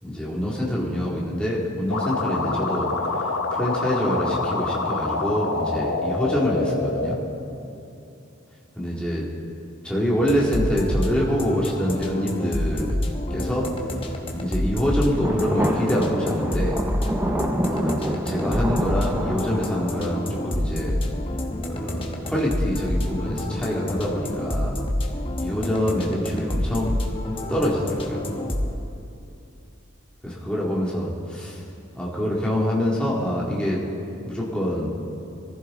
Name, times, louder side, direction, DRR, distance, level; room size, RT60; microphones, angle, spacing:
voice 1, 0.0-2.9 3.2-7.2 8.8-9.3 9.8-13.0 13.3-13.7 14.4-16.8 17.7-21.0 21.7-24.8 25.4-27.0 27.5-28.3 30.2-31.6 31.9-33.8 34.2-34.9, equal, 5° left, -5 dB, 2.2 m, -25 dB
sound 1, 1.9-7.2, left 3 dB, 80° left, 1.2 m, -26 dB
sound 2, 10.2-28.7, left 1 dB, 25° left, 1.1 m, -28 dB
sound 3, 15.2-20.6, equal, 10° right, 0.7 m, -28 dB
22.0 x 15.0 x 3.8 m, 2.7 s
head